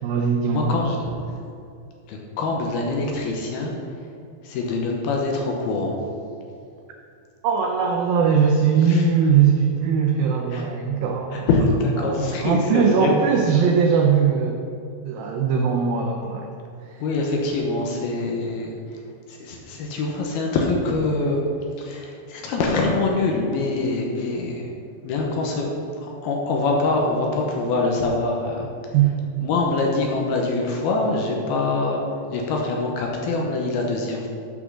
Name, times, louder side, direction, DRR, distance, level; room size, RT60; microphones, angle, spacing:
voice 1, 0.0-0.7 7.4-11.5 12.0-14.6 15.0-16.5 16.8-17.0 28.9-29.4, right 6 dB, 85° right, 2 dB, 2.0 m, -20 dB
voice 2, 0.5-1.1 2.1-3.7 4.4-6.0 8.9-9.1 10.5-10.7 11.3-13.3 17.0-19.0 19.3-21.4 21.8-24.7 25.0-25.7 26.0-28.7 29.4-32.0 32.3-34.3, left 3 dB, 75° left, 0 dB, 2.6 m, -24 dB
9.2 x 6.0 x 6.2 m, 2.5 s
omnidirectional pair, 5.0 m